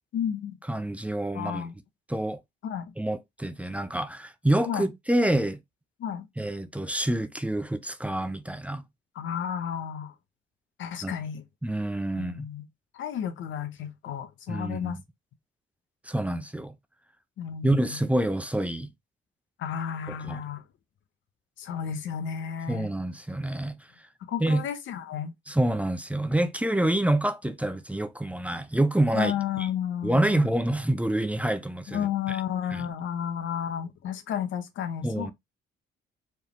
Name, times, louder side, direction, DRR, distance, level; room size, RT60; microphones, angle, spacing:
voice 1, 0.1-0.6 1.3-1.7 2.6-2.9 4.6-4.9 6.0-6.3 9.1-10.1 10.8-11.4 12.1-12.7 12.9-15.0 17.4-18.0 19.6-20.6 21.6-22.9 24.3-25.3 29.1-30.5 31.9-35.3, left 8 dB, 75° left, 0.9 m, -32 dB
voice 2, 0.7-1.7 2.1-2.4 3.0-5.6 6.4-8.8 11.0-11.1 11.6-12.5 14.5-15.0 16.1-16.7 17.6-18.9 20.1-20.4 22.7-23.8 24.4-24.6 25.5-29.7 30.0-32.4 32.7-32.8 35.0-35.3, right 1 dB, 5° right, 0.6 m, -27 dB
4.6 x 3.5 x 3.1 m
cardioid pair, 90°, 20 cm